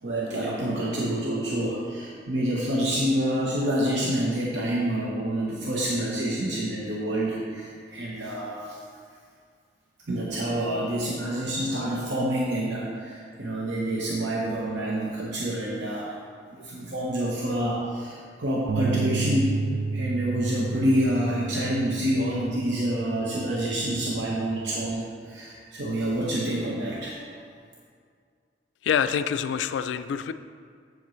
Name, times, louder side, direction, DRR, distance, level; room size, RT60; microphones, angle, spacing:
voice 1, 0.0-8.8 10.1-16.2 16.5-19.7 19.9-27.4, right 1 dB, 70° right, -4 dB, 0.9 m, -27 dB
Bass guitar, 18.7-24.9, right 4 dB, 45° right, 0.3 m, -32 dB
voice 2, 28.9-30.3, left 8 dB, 80° left, 12 dB, 0.3 m, -26 dB
7.8 x 7.2 x 3.1 m, 2.1 s
head